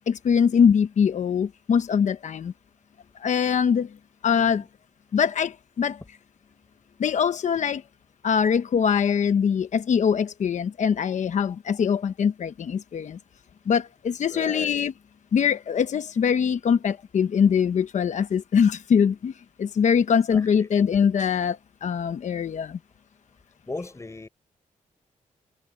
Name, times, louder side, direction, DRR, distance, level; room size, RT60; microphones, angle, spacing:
voice 1, 0.1-2.5 3.2-3.9 4.2-4.7 5.1-6.0 7.0-7.8 8.2-13.2 13.7-14.9 15.3-19.3 19.6-22.8, left 7 dB, 60° left, 1.0 m, -23 dB
voice 2, 14.3-14.7 20.3-20.7 23.7-24.3, left 2 dB, 20° left, 5.1 m, -36 dB
cardioid pair, 85°, 14 cm